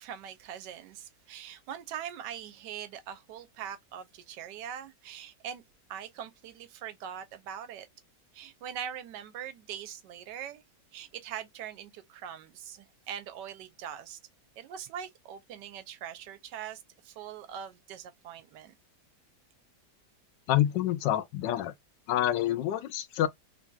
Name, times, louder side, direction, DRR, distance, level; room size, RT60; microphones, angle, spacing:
voice 1, 0.0-5.6 5.9-7.9 8.3-10.6 10.9-14.2 14.6-18.7, right 9 dB, 85° right, 1.2 m, -42 dB
voice 2, 20.5-21.7 22.1-23.3, left 12 dB, 85° left, 1.2 m, -27 dB
3.3 x 2.6 x 2.3 m
omnidirectional pair, 1.9 m